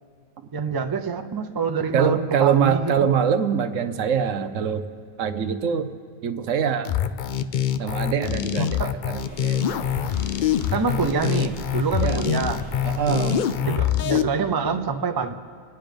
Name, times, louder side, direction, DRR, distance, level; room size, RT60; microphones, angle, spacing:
voice 1, 0.5-3.1 8.6-8.9 10.7-12.6 13.6-15.3, right 5 dB, 35° right, 7 dB, 0.3 m, -26 dB
voice 2, 1.9-4.9 5.2-5.9 6.2-6.9 7.8-9.6 12.0-12.2 12.8-13.5, right 7 dB, 70° right, 9 dB, 1.1 m, -23 dB
sound 1, 6.8-14.2, left 9 dB, 70° left, 0.4 m, -24 dB
sound 2, 9.2-13.6, right 2 dB, 55° left, 5.8 m, -40 dB
28.0 x 9.4 x 5.2 m, 2.3 s
omnidirectional pair, 1.4 m